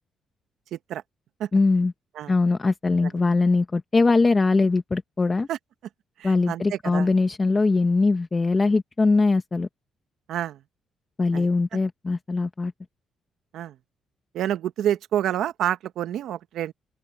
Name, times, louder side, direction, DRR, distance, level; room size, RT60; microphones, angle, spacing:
voice 1, 0.7-1.0 1.4-1.5 2.2-2.3 3.0-3.1 5.5-5.6 6.2-6.6 6.9-7.1 10.3-10.6 11.3-11.5 13.5-13.7 14.3-16.7, right 11 dB, 75° right, 0.8 m, -28 dB
voice 2, 1.5-1.9 2.3-5.5 6.2-9.7 11.2-12.7, left 3 dB, 25° left, 1.1 m, -21 dB
cardioid pair, 90°, 0 cm